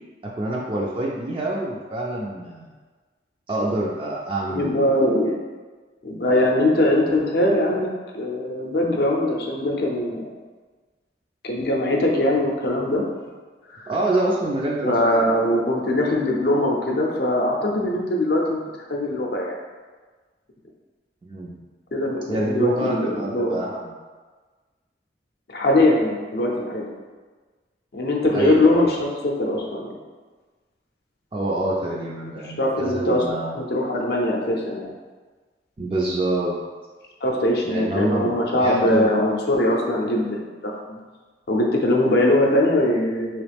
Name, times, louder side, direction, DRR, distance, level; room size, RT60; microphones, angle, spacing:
voice 1, 0.2-2.7 3.5-4.9 13.9-15.0 21.2-21.6 22.3-23.9 28.3-28.9 31.3-33.6 35.8-36.6 37.6-39.1, right 2 dB, 30° right, -4 dB, 0.3 m, -26 dB
voice 2, 4.5-5.3 6.0-7.9 8.1-10.3 11.4-13.0 13.7-13.9 14.8-18.6 18.9-19.6 21.9-23.7 25.5-26.9 27.9-30.0 32.4-33.2 33.6-34.9 37.2-41.0 41.5-43.4, left 1 dB, 60° left, -1 dB, 0.5 m, -21 dB
3.1 x 3.0 x 3.4 m, 1.4 s
head